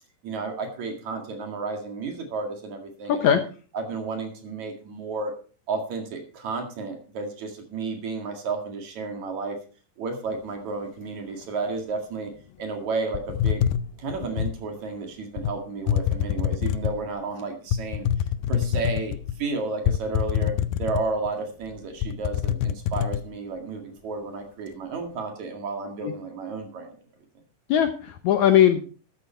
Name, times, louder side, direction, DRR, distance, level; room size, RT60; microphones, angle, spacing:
voice 1, 0.2-3.4 3.7-5.3 5.7-9.6 10.0-12.3 12.6-13.7 14.0-18.1 18.5-27.0, right 4 dB, 55° right, 4 dB, 3.2 m, -32 dB
voice 2, 3.1-3.4 26.0-26.1 27.7-28.8, left 10 dB, 70° left, 8 dB, 1.9 m, -19 dB
sound 1, 13.1-14.6 15.4-15.5 15.9-17.0 17.7-19.4 19.9-21.3 21.6-21.7 22.0-23.2, left 10 dB, 90° left, 2.4 m, -25 dB
13.0 x 9.4 x 4.4 m, 0.38 s
omnidirectional pair, 4.1 m